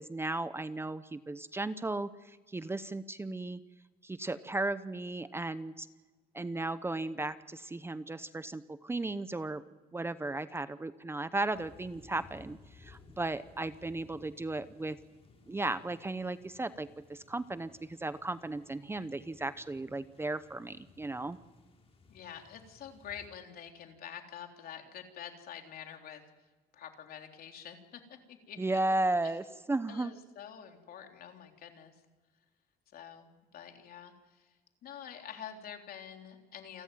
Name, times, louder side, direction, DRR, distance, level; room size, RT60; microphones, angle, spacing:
voice 1, 0.0-3.6 4.0-5.9 6.3-9.6 9.9-15.0 15.5-21.4 28.6-30.1, right 2 dB, 15° right, 14 dB, 0.8 m, -35 dB
sound 1, 11.5-23.3, left 3 dB, 35° left, 3.7 m, -59 dB
voice 2, 22.1-29.0 29.2-29.3 29.9-32.0 32.9-34.6 34.8-36.8, left 8 dB, 60° left, 4 dB, 3.5 m, -47 dB
28.5 x 13.5 x 9.1 m, 1.3 s
cardioid pair, 110°, 17 cm